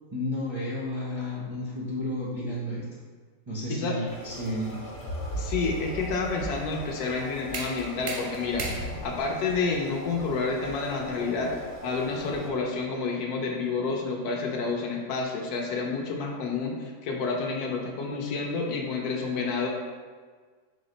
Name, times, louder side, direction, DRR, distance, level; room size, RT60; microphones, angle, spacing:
voice 1, 0.1-2.8 3.5-4.8, left 1 dB, 35° right, -8 dB, 0.4 m, -32 dB
sound 1, 4.1-12.5, equal, 45° left, 1.0 m, -39 dB
voice 2, 5.3-11.5 11.8-19.7, left 4 dB, 75° left, 0 dB, 1.1 m, -29 dB
sound 2, 6.8-12.6, right 2 dB, 90° right, 1.3 m, -39 dB
4.9 x 2.0 x 3.8 m, 1.5 s
omnidirectional pair, 1.7 m